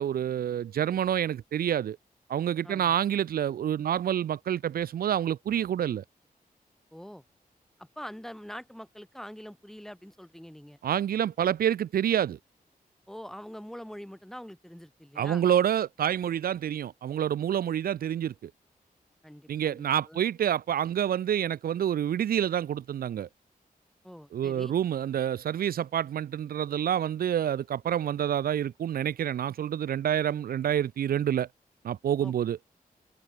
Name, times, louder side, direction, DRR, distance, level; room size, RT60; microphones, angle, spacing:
voice 1, 0.0-2.0 2.3-6.0 10.8-12.4 15.2-18.5 19.5-23.3 24.3-31.5 31.8-32.6, right 10 dB, 75° right, 0.4 m, -28 dB
voice 2, 2.6-3.0 6.9-7.2 7.8-10.8 13.1-15.4 19.2-20.2 24.0-24.7 32.2-32.3, equal, 5° left, 2.1 m, -44 dB
open air
wide cardioid pair, 150°, 15 cm